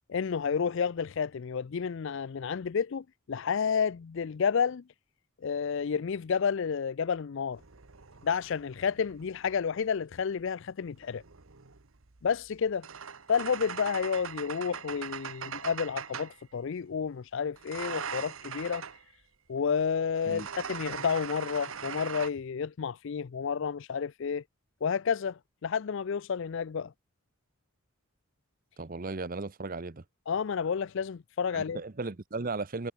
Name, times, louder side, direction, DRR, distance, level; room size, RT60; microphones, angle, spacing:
voice 1, 0.1-4.8 5.4-7.6 8.2-11.2 12.2-12.9 13.3-18.8 19.5-24.4 24.8-26.9 30.3-31.8, left 6 dB, 60° left, 0.4 m, -30 dB
sound 1, 7.5-9.7 10.9-16.4 17.6-19.0 20.2-22.3, right 7 dB, 70° right, 1.2 m, -41 dB
voice 2, 28.8-30.0 31.5-32.9, right 3 dB, 40° right, 0.8 m, -36 dB
head